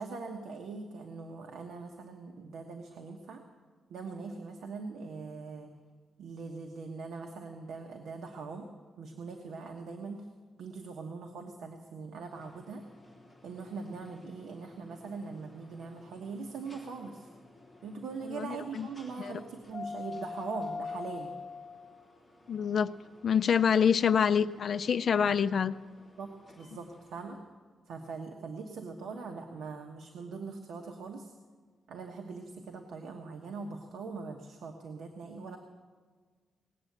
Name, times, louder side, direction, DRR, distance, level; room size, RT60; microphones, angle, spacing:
voice 1, 0.0-3.4 3.9-5.7 6.2-8.7 9.0-10.3 10.6-12.8 13.4-17.3 17.8-21.4 25.2-25.5 26.2-27.4 27.9-31.3 31.9-35.6, right 4 dB, 85° right, 3 dB, 1.2 m, -42 dB
sound 1, 12.3-27.2, left 4 dB, 5° left, 3.3 m, -47 dB
voice 2, 18.3-18.9 19.2-19.3 22.5-22.9 23.2-25.7, left 7 dB, 50° left, 9 dB, 0.4 m, -26 dB
19.0 x 8.4 x 8.0 m, 1.5 s
wide cardioid pair, 160°, 0 cm